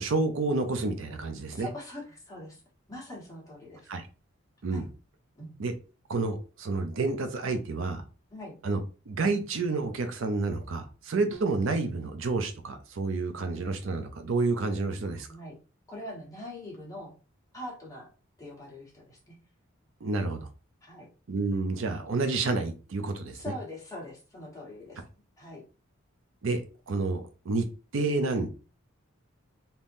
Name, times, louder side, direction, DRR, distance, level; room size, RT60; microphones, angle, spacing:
voice 1, 0.0-1.7 3.9-4.0 4.6-4.9 5.6-5.7 6.1-8.0 8.6-8.8 9.1-15.3 20.0-20.5 21.3-23.4 26.4-27.7 27.9-28.5, right 3 dB, 65° right, 7 dB, 0.5 m, -29 dB
voice 2, 1.5-2.6 2.9-3.9 4.7-4.9 5.4-5.6 8.3-8.5 15.3-15.6 15.9-17.1 17.5-18.1 18.4-19.4 20.8-21.1 23.3-25.0 25.4-25.6, left 1 dB, 15° left, -4 dB, 1.2 m, -42 dB
3.5 x 2.8 x 2.6 m, 0.34 s
head